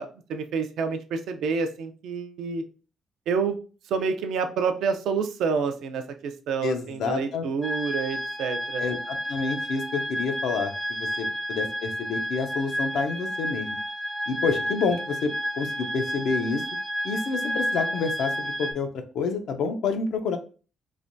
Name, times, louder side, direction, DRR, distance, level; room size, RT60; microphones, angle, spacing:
voice 1, 0.0-2.6 3.3-3.5 3.9-8.8, right 5 dB, 80° right, 7 dB, 0.4 m, -28 dB
voice 2, 6.6-7.4 8.8-13.7 14.3-16.6 17.0-20.4, left 4 dB, 80° left, 7 dB, 0.4 m, -28 dB
sound 1, 7.6-18.7, equal, 5° left, 0.3 m, -31 dB
3.2 x 2.2 x 2.5 m, 0.37 s
cardioid pair, 90°, 0 cm